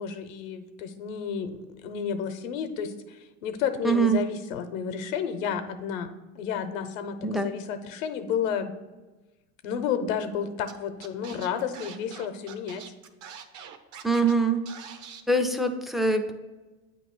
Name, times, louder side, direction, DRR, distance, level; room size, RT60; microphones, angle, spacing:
voice 1, 0.0-8.7 9.6-12.8, left 7 dB, 85° left, 9 dB, 0.8 m, -31 dB
voice 2, 3.8-4.2 7.2-7.5 14.0-14.6 15.3-16.3, right 3 dB, ahead, 5 dB, 0.3 m, -23 dB
Scratching (performance technique), 10.7-10.8 11.0-14.3 14.7-15.2, right 8 dB, 50° right, 0.8 m, -44 dB
8.6 x 3.0 x 6.0 m, 1.2 s
supercardioid pair, 110°, 39 cm